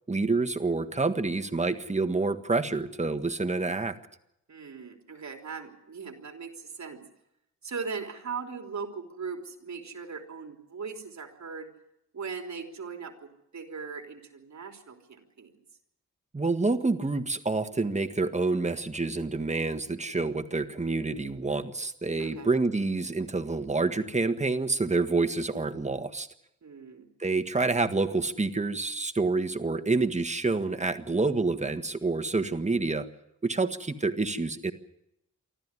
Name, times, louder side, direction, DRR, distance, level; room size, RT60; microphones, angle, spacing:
voice 1, 0.1-4.0 16.3-26.3 27.2-33.1 33.4-34.7, right 3 dB, 25° right, 7 dB, 1.6 m, -28 dB
voice 2, 4.5-7.0 7.6-11.7 12.1-15.6 22.2-22.5 26.6-27.1, right 5 dB, 65° right, 3 dB, 3.6 m, -39 dB
24.5 x 14.0 x 9.8 m, 0.85 s
cardioid pair, 75°, 30 cm